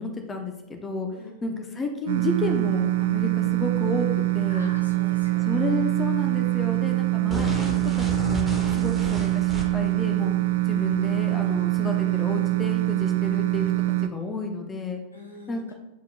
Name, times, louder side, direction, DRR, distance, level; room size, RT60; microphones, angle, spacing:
voice 1, 0.0-1.1 1.4-4.1 4.3-4.7 5.4-10.3 10.7-13.7 14.0-15.0 15.5-15.7, left 2 dB, 20° left, 3 dB, 0.8 m, -31 dB
sound 1, 2.1-14.1, right 22 dB, 55° right, 0.3 m, -24 dB
voice 2, 4.5-5.6 8.6-8.8 10.4-10.6 15.1-15.7, left 2 dB, 85° left, -1 dB, 1.3 m, -44 dB
sound 2, 7.3-10.0, left 1 dB, 5° right, 1.3 m, -32 dB
9.3 x 4.5 x 2.3 m, 1.0 s
figure-of-eight pair, 90°, 0 cm